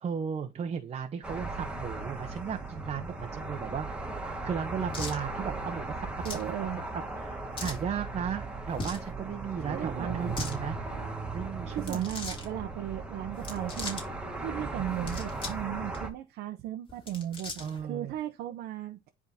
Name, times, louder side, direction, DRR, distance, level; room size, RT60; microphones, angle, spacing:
voice 1, 0.0-3.9 4.4-6.1 6.9-10.8 11.3-12.0 17.6-18.1, right 7 dB, 40° right, 0.8 m, -35 dB
sound 1, 1.2-16.1, right 3 dB, 5° right, 1.6 m, -37 dB
sound 2, 4.9-5.2 6.2-6.5 7.5-7.8 8.7-9.1 10.2-10.6 11.8-12.5 13.3-14.0 14.9-15.6 15.9-16.0 16.9-17.8, left 2 dB, 30° left, 3.3 m, -39 dB
voice 2, 6.2-6.8 9.6-10.3 11.7-14.0 14.4-19.1, right 12 dB, 75° right, 0.7 m, -36 dB
10.5 x 3.6 x 2.8 m
cardioid pair, 110°, 17 cm